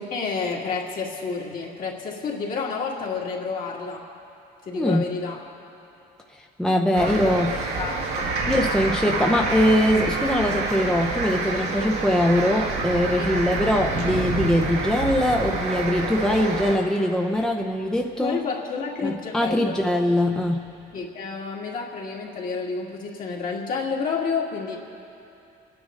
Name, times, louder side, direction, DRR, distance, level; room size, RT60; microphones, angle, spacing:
voice 1, 0.0-4.1 4.7-5.4 6.9-8.3 13.1-13.3 18.2-19.8 20.9-24.8, left 5 dB, 55° left, -2 dB, 2.3 m, -30 dB
voice 2, 4.7-5.1 6.3-7.7 8.5-18.4 19.0-20.7, left 1 dB, 5° left, 1 dB, 0.7 m, -22 dB
sound 1, 6.9-16.8, right 3 dB, 85° right, 1.7 m, -27 dB
27.5 x 9.9 x 3.8 m, 2.7 s
cardioid pair, 110°, 17 cm